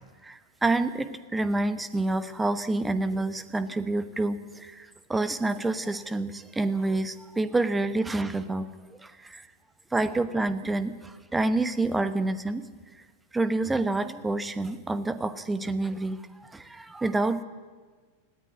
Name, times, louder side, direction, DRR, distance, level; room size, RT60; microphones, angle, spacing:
voice 1, 0.2-9.5 9.9-12.6 13.0-13.1 13.3-17.4, right 2 dB, 10° right, 13 dB, 1.1 m, -28 dB
19.5 x 15.0 x 9.5 m, 1.5 s
figure-of-eight pair, 90°, 0 cm